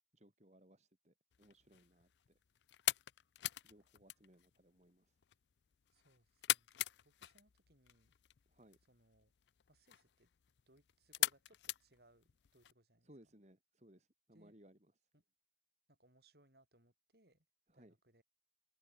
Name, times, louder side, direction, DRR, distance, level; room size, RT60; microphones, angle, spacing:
voice 1, 0.1-2.4 3.6-5.2 8.5-8.8 13.0-14.8 17.7-17.9, right 1 dB, 40° right, 3.6 m, -65 dB
sound 1, 1.3-12.7, left 15 dB, 70° left, 0.5 m, -43 dB
voice 2, 5.9-8.1 8.9-9.3 9.7-10.3 10.7-13.3 14.3-14.6 15.1-15.2 15.9-17.5 17.7-18.2, right 1 dB, 60° right, 6.7 m, -71 dB
head